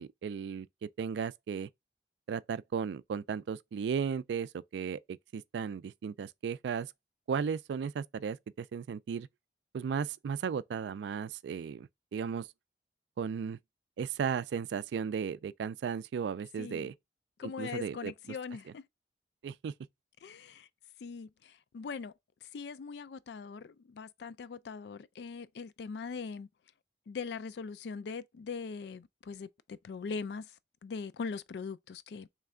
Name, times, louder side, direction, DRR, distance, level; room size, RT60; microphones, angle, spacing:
voice 1, 0.0-1.7 2.3-6.9 7.3-9.3 9.7-12.5 13.2-13.6 14.0-16.9 17.4-18.1 19.4-19.7, right 6 dB, 80° right, 0.3 m, -35 dB
voice 2, 16.6-16.9 17.4-18.8 20.2-20.7 21.0-22.1 22.4-26.5 27.1-30.5 30.8-32.3, left 5 dB, 75° left, 0.4 m, -41 dB
3.3 x 3.2 x 3.7 m
head